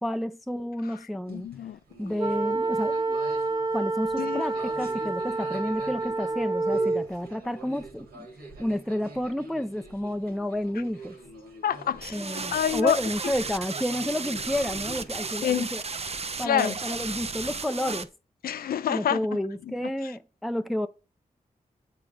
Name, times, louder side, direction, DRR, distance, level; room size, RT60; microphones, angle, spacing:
voice 1, 0.0-1.5 2.0-3.2 3.7-8.3 8.6-11.2 12.1-15.8 16.4-18.1 18.9-20.9, left 1 dB, ahead, 0.5 m, -30 dB
voice 2, 1.3-1.8 4.2-4.4 11.6-12.2 12.5-13.0 15.4-15.7 16.4-16.8 18.4-19.2, left 9 dB, 85° left, 0.4 m, -27 dB
sound 1, 1.3-15.7, right 2 dB, 90° right, 2.2 m, -45 dB
sound 2, 2.2-7.1, right 3 dB, 25° right, 1.0 m, -28 dB
sound 3, 12.0-18.0, right 4 dB, 45° right, 0.7 m, -34 dB
7.8 x 3.7 x 4.4 m
cardioid pair, 45°, 15 cm